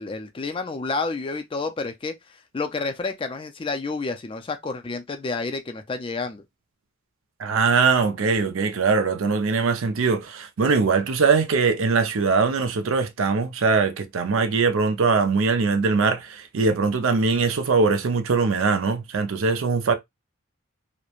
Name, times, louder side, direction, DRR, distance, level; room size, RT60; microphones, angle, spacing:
voice 1, 0.0-2.1 2.5-6.4, left 3 dB, 25° left, 0.4 m, -29 dB
voice 2, 7.4-19.9, right 4 dB, 70° right, 0.5 m, -21 dB
3.0 x 2.1 x 2.3 m
head